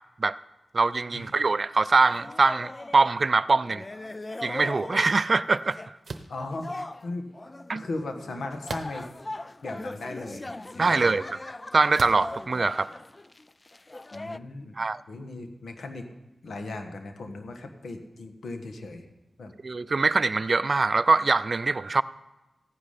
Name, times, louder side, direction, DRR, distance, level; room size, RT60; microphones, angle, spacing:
voice 1, 0.7-3.8 4.4-5.8 7.7-7.8 10.8-11.4 11.7-12.9 14.8-15.0 19.6-22.0, right 3 dB, 55° right, 17 dB, 0.4 m, -23 dB
sound 1, 2.1-3.2 3.5-5.2 5.5-5.9 6.4-14.4, left 2 dB, 30° left, 0.4 m, -40 dB
sound 2, 6.0-6.4 8.6-9.2 9.9-10.0 11.9-12.3, right 4 dB, 70° right, 0.8 m, -37 dB
voice 2, 6.3-6.7 7.0-7.3 7.7-9.1 9.6-11.2 14.1-14.8 15.1-16.1 16.4-19.1 19.4-19.5, left 2 dB, 85° left, 5 dB, 1.4 m, -37 dB
15.0 x 9.6 x 5.1 m, 1.1 s
cardioid pair, 55°, 0 cm